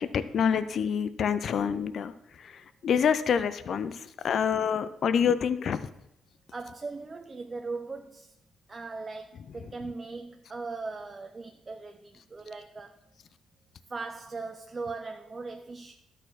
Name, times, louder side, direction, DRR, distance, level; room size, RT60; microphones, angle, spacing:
voice 1, 0.0-5.9 9.7-9.8, left 7 dB, 60° left, 13 dB, 0.5 m, -27 dB
voice 2, 6.5-8.3 8.7-13.0 13.9-15.9, right 3 dB, 30° right, 5 dB, 0.7 m, -39 dB
12.5 x 4.3 x 6.3 m, 0.80 s
cardioid pair, 90°, 0 cm